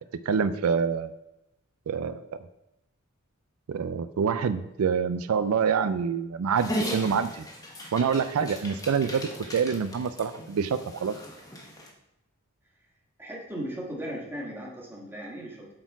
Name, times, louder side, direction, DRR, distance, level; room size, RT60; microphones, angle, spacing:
voice 1, 0.3-1.1 1.9-2.2 3.7-7.5 7.9-11.1, right 6 dB, 90° right, 13 dB, 0.4 m, -26 dB
Dog, 6.5-11.9, equal, 15° left, 1.1 m, -37 dB
voice 2, 13.2-15.7, equal, 10° right, -3 dB, 1.6 m, -37 dB
7.8 x 4.2 x 4.6 m, 0.89 s
head